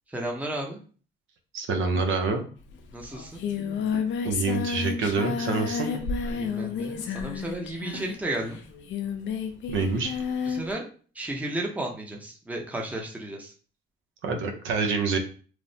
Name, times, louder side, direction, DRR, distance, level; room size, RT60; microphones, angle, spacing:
voice 1, 0.1-0.8 2.9-3.4 6.3-8.6 10.5-10.8 11.1-13.5, right 1 dB, 5° right, 0 dB, 0.6 m, -33 dB
voice 2, 1.5-2.4 4.2-5.9 9.7-10.2 14.2-15.2, right 4 dB, 80° right, 4 dB, 0.7 m, -26 dB
sound 1, 1.9-2.2 3.9-4.3 5.9-6.2 7.9-8.3, right 3 dB, 50° right, 1.2 m, -43 dB
Singing, 2.7-2.8 3.0-10.7, left 6 dB, 70° left, 0.5 m, -31 dB
3.1 x 2.0 x 2.7 m, 0.40 s
cardioid pair, 90°, 20 cm